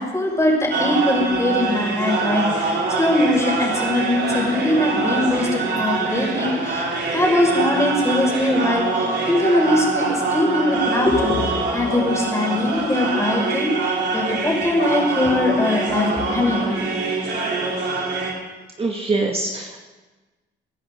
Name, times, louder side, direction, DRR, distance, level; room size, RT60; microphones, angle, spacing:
voice 1, 0.0-16.8, left 1 dB, 15° left, -2 dB, 5.7 m, -21 dB
sound 1, 0.7-18.3, right 3 dB, 60° right, 3.7 m, -24 dB
voice 2, 18.8-19.9, right 3 dB, 30° right, 0 dB, 2.1 m, -24 dB
26.5 x 10.5 x 3.9 m, 1.2 s
cardioid pair, 90°, 20 cm